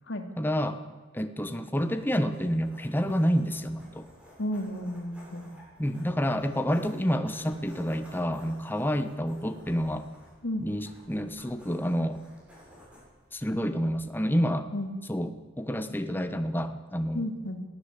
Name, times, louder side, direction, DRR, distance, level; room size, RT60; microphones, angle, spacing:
voice 1, 0.4-0.8 1.1-4.1 5.8-10.1 10.6-12.2 13.3-14.7 15.1-17.3, equal, 10° left, 8 dB, 1.1 m, -28 dB
sound 1, 1.8-14.5, equal, 5° right, 7.4 m, -54 dB
voice 2, 4.4-5.5 10.4-10.7 14.7-14.9 17.1-17.6, left 1 dB, 60° left, 5 dB, 2.6 m, -33 dB
22.0 x 15.0 x 8.3 m, 1.4 s
head